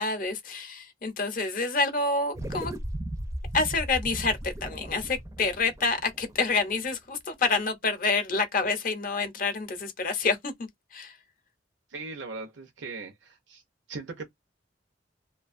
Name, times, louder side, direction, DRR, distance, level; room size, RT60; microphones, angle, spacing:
voice 1, 0.0-2.7 3.5-10.5 10.9-11.2, left 4 dB, 45° left, 0.6 m, -28 dB
sound 1, 2.3-7.0, right 1 dB, 15° right, 0.4 m, -36 dB
voice 2, 11.9-13.6 13.9-14.3, right 3 dB, 85° right, 0.6 m, -39 dB
2.4 x 2.2 x 2.4 m
head